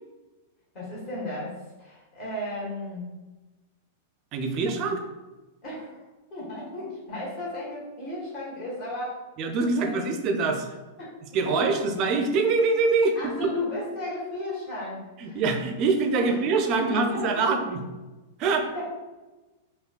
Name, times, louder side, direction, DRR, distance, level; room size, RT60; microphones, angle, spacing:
voice 1, 0.7-3.1 4.8-4.9 5.6-6.0 6.3-9.2 9.7-10.1 11.0-11.1 11.4-11.8 13.1-15.4 16.1-17.5 18.7-19.0, left 1 dB, 35° left, -6 dB, 1.5 m, -34 dB
voice 2, 4.3-5.0 9.4-10.8 11.3-13.5 15.2-17.8 18.4-18.7, right 4 dB, 40° right, 5 dB, 0.4 m, -24 dB
4.9 x 2.2 x 2.3 m, 1.1 s
figure-of-eight pair, 95°, 0 cm